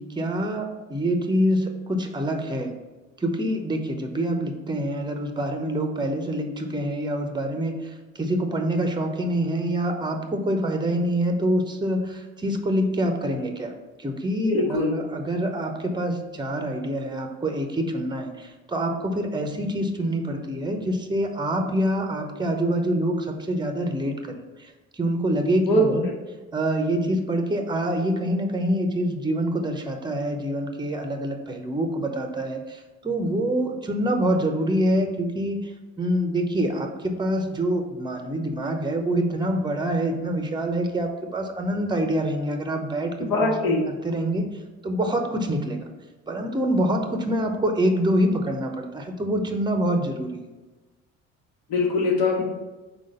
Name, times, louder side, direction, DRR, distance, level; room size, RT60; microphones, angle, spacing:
voice 1, 0.0-2.7 3.2-13.7 14.0-26.1 26.5-35.7 36.0-43.8 44.0-44.5 44.8-45.8 46.3-50.4, right 1 dB, 10° right, 5 dB, 0.8 m, -26 dB
voice 2, 14.4-14.9 25.7-26.0 43.3-43.9 51.7-52.4, left 1 dB, 65° left, 0 dB, 1.5 m, -22 dB
4.7 x 3.9 x 5.4 m, 1.2 s
figure-of-eight pair, 55°, 38 cm